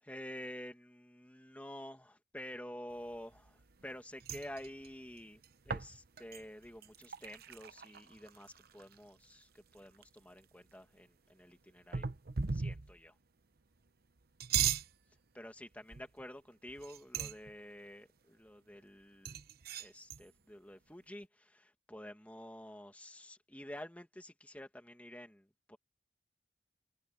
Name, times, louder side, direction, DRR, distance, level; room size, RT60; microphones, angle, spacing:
voice 1, 0.0-12.1 12.5-13.2 15.3-19.4 19.8-25.8, left 1 dB, 10° left, 1.9 m, -49 dB
sound 1, 3.1-3.9 4.2-9.1 9.4-9.5 9.7-10.4 11.9-13.1 14.2-14.9 15.9-16.2 16.7-17.5 19.2-20.2, right 7 dB, 55° right, 0.9 m, -38 dB
head